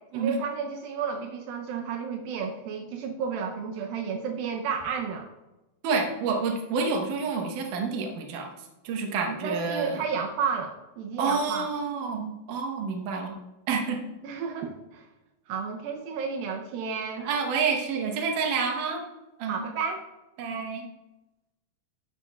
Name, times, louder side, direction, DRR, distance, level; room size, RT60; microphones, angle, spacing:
voice 1, 0.1-5.3 9.4-11.7 14.2-15.1 15.5-17.3 19.5-20.0, right 6 dB, 90° right, 3 dB, 2.0 m, -32 dB
voice 2, 5.8-8.5 8.8-10.0 11.2-13.4 13.7-14.1 17.2-19.0 19.4-19.6 20.4-20.9, right 5 dB, 70° right, 2 dB, 2.0 m, -28 dB
12.0 x 10.0 x 2.4 m, 1.0 s
omnidirectional pair, 5.1 m